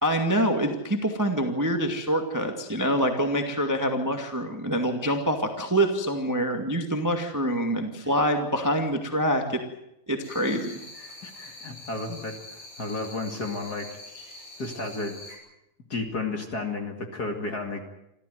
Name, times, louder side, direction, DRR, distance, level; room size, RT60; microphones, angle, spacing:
voice 1, 0.0-9.6 10.1-10.8, equal, 10° right, 5 dB, 1.2 m, -25 dB
sound 1, 10.2-15.3, left 2 dB, 60° left, 8.2 m, -45 dB
voice 2, 11.2-14.0 14.6-15.2 15.9-17.8, left 3 dB, 30° left, 4 dB, 2.4 m, -32 dB
27.0 x 14.5 x 9.4 m, 0.85 s
omnidirectional pair, 4.1 m